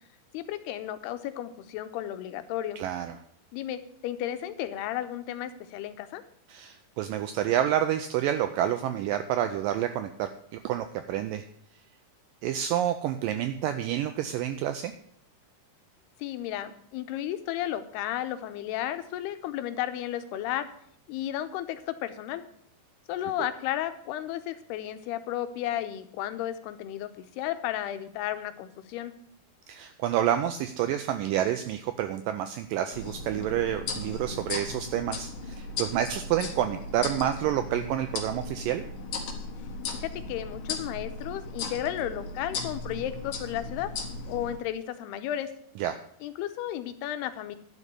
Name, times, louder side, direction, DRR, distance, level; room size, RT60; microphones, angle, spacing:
voice 1, 0.3-2.8 3.5-6.2 16.2-20.7 21.1-22.4 23.1-29.1 39.9-43.9 44.3-45.5 46.2-47.6, left 12 dB, 90° left, 10 dB, 2.8 m, -33 dB
voice 2, 2.8-3.1 6.5-10.3 10.6-11.4 12.4-14.9 29.7-38.8 45.8-46.0, right 11 dB, 85° right, 8 dB, 2.0 m, -28 dB
sound 1, 32.9-44.6, left 3 dB, 65° left, 2.7 m, -37 dB
11.0 x 5.4 x 8.1 m, 0.66 s
omnidirectional pair, 4.5 m